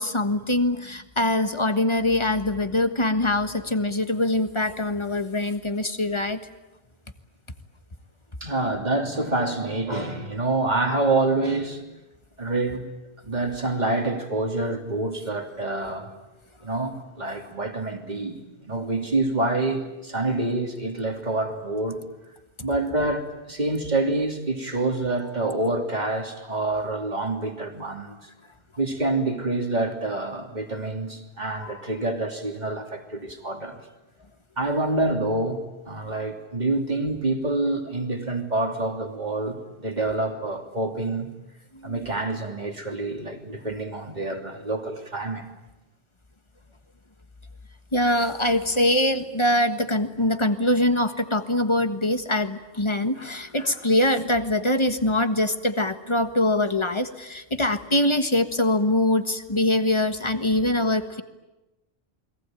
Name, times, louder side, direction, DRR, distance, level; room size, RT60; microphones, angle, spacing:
voice 1, 0.0-6.4 41.7-42.0 47.9-61.2, left 1 dB, 30° left, 1.5 m, -23 dB
voice 2, 8.4-11.8 12.4-12.9 13.3-16.1 16.6-22.0 22.6-28.3 28.8-33.8 34.6-41.3 41.8-45.5, right 2 dB, 40° right, 3.1 m, -27 dB
29.0 x 22.0 x 9.1 m
omnidirectional pair, 1.1 m